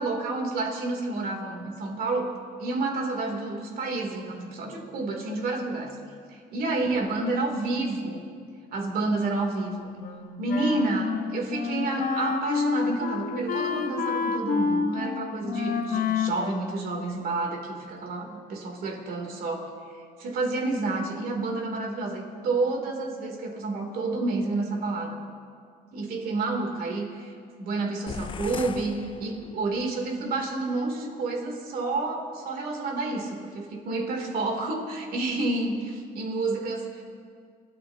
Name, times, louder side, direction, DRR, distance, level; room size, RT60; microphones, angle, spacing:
voice 1, 0.0-2.3 2.6-6.0 6.3-8.2 8.7-9.9 10.4-19.7 20.2-25.2 25.9-27.3 27.6-37.0, right 2 dB, 60° right, 1 dB, 3.2 m, -29 dB
Wind instrument woodwind instrument, 10.0-17.5, left 5 dB, 55° left, 1.4 m, -29 dB
sound 1, 28.1-29.9, left 7 dB, 30° left, 0.4 m, -39 dB
29.5 x 14.0 x 2.9 m, 2.1 s
cardioid pair, 110°, 17 cm